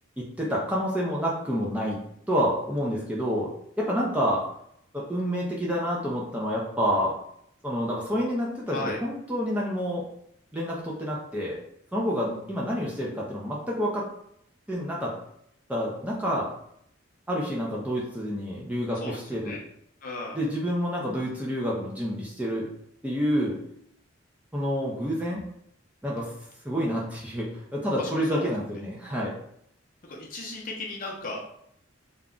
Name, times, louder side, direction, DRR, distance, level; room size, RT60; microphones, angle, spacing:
voice 1, 0.2-2.0 2.3-4.4 4.9-7.2 7.6-10.0 10.5-11.6 11.9-14.0 14.7-15.1 15.7-16.5 17.3-19.6 20.3-22.7 23.0-23.6 24.5-25.4 26.0-26.3 26.6-29.3, equal, 5° right, -4 dB, 0.4 m, -28 dB
voice 2, 20.0-20.4 28.0-28.4 30.1-31.6, left 2 dB, 40° left, -2 dB, 0.6 m, -35 dB
2.4 x 2.1 x 3.6 m, 0.72 s
head